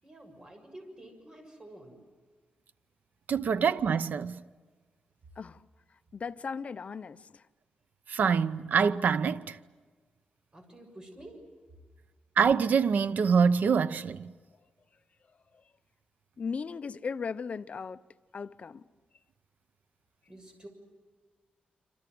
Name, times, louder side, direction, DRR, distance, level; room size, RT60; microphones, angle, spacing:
voice 1, 0.0-2.0 10.5-11.4 20.3-20.7, right 1 dB, 25° right, 6.9 m, -49 dB
voice 2, 3.3-4.4 8.1-9.6 12.4-14.3, right 6 dB, 65° right, 0.8 m, -25 dB
voice 3, 6.1-7.4 15.5-15.6 16.4-18.0 18.3-18.8, left 5 dB, 45° left, 0.7 m, -37 dB
27.5 x 26.5 x 7.8 m
wide cardioid pair, 135°, 3 cm